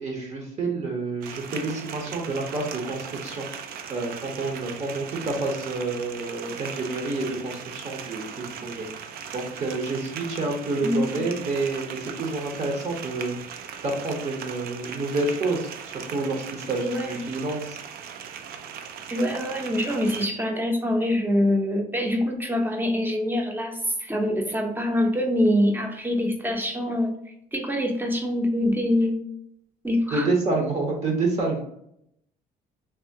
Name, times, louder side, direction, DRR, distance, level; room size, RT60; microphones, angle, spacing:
voice 1, 0.0-3.5 3.9-8.2 8.6-17.8 30.1-31.6, right 3 dB, 40° right, 1 dB, 0.8 m, -29 dB
sound 1, 1.2-20.3, right 7 dB, 65° right, 0.4 m, -38 dB
voice 2, 10.8-11.2 16.8-17.2 19.1-27.1 27.5-29.2 29.8-30.3, left 1 dB, 10° right, 3 dB, 0.7 m, -24 dB
3.4 x 2.7 x 2.7 m, 0.74 s
cardioid pair, 110°, 17 cm